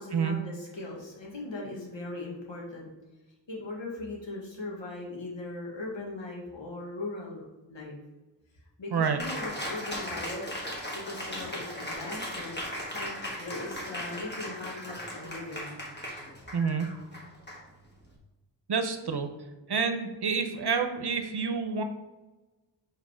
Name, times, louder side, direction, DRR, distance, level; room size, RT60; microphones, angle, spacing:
voice 1, 0.0-2.9 3.5-7.4 7.7-8.0 8.8-10.5 10.9-12.6 12.9-15.8, left 2 dB, 90° left, -3 dB, 1.6 m, -39 dB
voice 2, 8.9-9.2 16.5-16.9 18.7-19.3 19.7-21.8, right 5 dB, 65° right, 7 dB, 0.8 m, -28 dB
Cheering, 9.2-18.1, equal, 25° left, 1.4 m, -38 dB
5.2 x 3.9 x 5.0 m, 1.1 s
wide cardioid pair, 65°, 43 cm